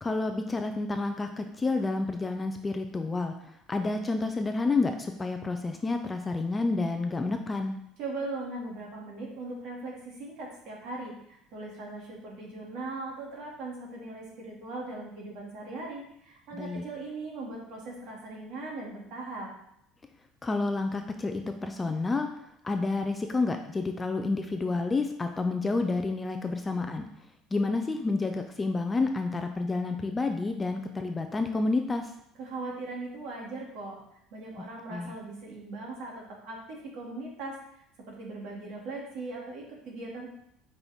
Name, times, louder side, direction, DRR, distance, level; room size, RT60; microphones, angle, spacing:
voice 1, 0.0-7.8 16.5-16.8 20.4-22.3 22.6-27.0 27.5-32.1 34.9-35.1, left 3 dB, 10° left, 5 dB, 0.4 m, -29 dB
voice 2, 8.0-19.5 32.4-34.0 34.3-40.3, right 2 dB, 55° right, -2 dB, 2.3 m, -39 dB
8.3 x 5.5 x 3.6 m, 0.74 s
cardioid pair, 175°, 0 cm